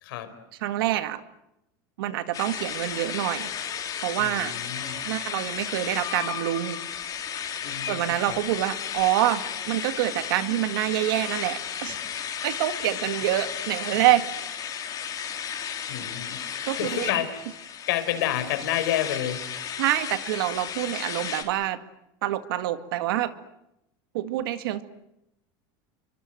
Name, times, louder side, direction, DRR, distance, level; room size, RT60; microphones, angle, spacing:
voice 1, 0.6-1.2 2.0-3.5 4.0-4.6 5.1-6.8 7.9-12.0 12.4-14.2 16.6-17.1 19.8-21.8 22.2-23.3 24.1-24.8, right 14 dB, 85° right, 10 dB, 2.1 m, -26 dB
sound 1, 2.3-21.4, left 8 dB, 30° left, 4.3 m, -34 dB
voice 2, 4.2-5.0 7.6-8.4 15.9-19.4, left 11 dB, 90° left, 10 dB, 4.8 m, -30 dB
29.5 x 24.5 x 7.9 m, 0.87 s
supercardioid pair, 140°, 12 cm